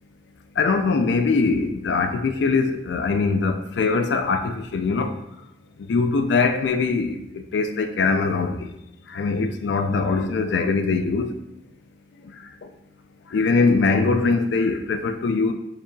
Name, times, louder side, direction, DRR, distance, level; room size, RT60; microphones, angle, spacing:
voice 1, 0.6-5.1 5.9-7.2 7.5-8.7 9.1-11.3 13.3-15.5, left 4 dB, 75° left, 0.4 m, -22 dB
4.3 x 2.9 x 2.6 m
head